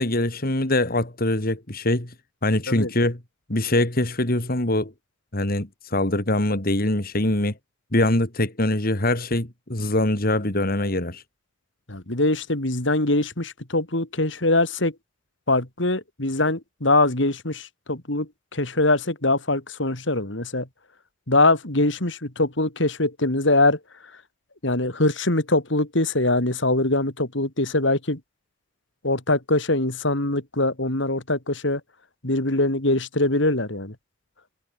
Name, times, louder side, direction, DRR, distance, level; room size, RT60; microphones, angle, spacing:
voice 1, 0.0-2.1 2.4-3.2 3.5-4.9 5.3-7.5 7.9-11.2, left 1 dB, 50° left, 3.1 m, -23 dB
voice 2, 11.9-14.9 15.5-20.7 21.3-23.8 24.6-28.2 29.0-31.8 32.2-34.0, left 2 dB, 65° left, 3.5 m, -23 dB
head